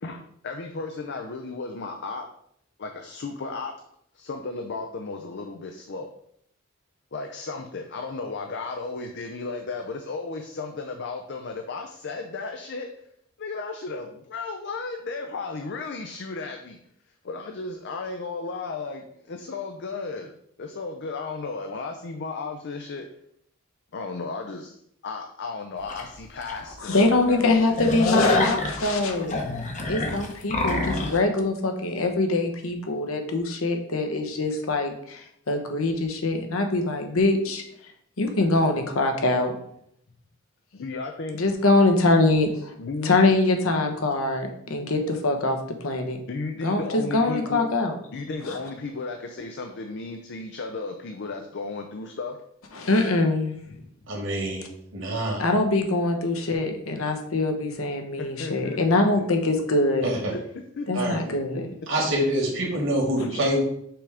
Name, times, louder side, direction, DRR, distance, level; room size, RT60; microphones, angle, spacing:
voice 1, 0.0-2.3 2.8-3.7 4.1-6.1 7.1-12.9 13.4-16.8 17.2-20.3 20.6-23.1 23.9-24.7 25.0-27.0 27.3-28.2 40.7-41.4 42.8-43.2 46.3-47.7 48.1-52.4 58.2-59.3 60.3-60.4 60.8-61.6, left 3 dB, 55° left, 4 dB, 0.5 m, -34 dB
sound 1, 25.9-26.0 26.5-26.6 26.9-27.1 27.4-31.2, left 2 dB, 35° left, 0.9 m, -26 dB
voice 2, 26.8-29.4 29.9-37.6 38.2-39.5 41.3-42.7 43.0-46.2 46.6-48.0 48.4-48.6 52.7-53.5 55.4-60.1 60.9-61.6 63.2-63.3, left 2 dB, 70° left, 4 dB, 1.0 m, -23 dB
voice 3, 54.1-54.7 54.9-55.4 60.0-60.3 60.9-61.2 61.9-63.6, right 1 dB, 60° right, -2 dB, 1.9 m, -25 dB
5.9 x 3.4 x 4.9 m, 0.70 s
head